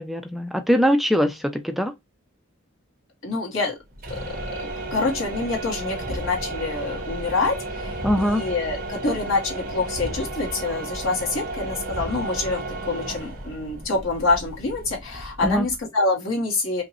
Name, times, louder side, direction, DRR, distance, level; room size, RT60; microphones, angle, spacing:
voice 1, 0.0-1.9 8.0-8.4 15.4-15.7, equal, ahead, 0.4 m, -22 dB
voice 2, 3.2-3.7 4.6-16.8, left 3 dB, 80° left, 2.1 m, -26 dB
sound 1, 3.9-15.8, right 1 dB, 45° right, 1.8 m, -33 dB
5.1 x 2.9 x 3.0 m
head